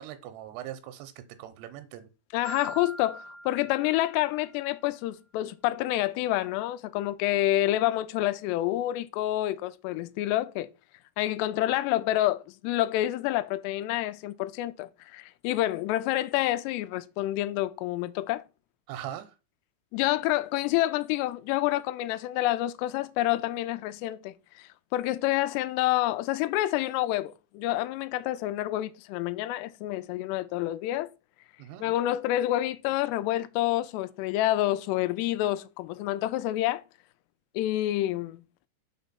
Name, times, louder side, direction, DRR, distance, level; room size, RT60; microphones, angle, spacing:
voice 1, 0.0-2.1 18.9-19.4 31.6-31.8, right 11 dB, 90° right, 2.8 m, -41 dB
voice 2, 2.3-10.7 11.2-18.4 19.9-31.1 31.8-36.8 37.6-38.4, left 15 dB, 85° left, 2.7 m, -28 dB
Marimba xylophone, 2.4-4.6, right 1 dB, 50° left, 2.3 m, -43 dB
5.8 x 4.2 x 5.5 m
omnidirectional pair, 4.8 m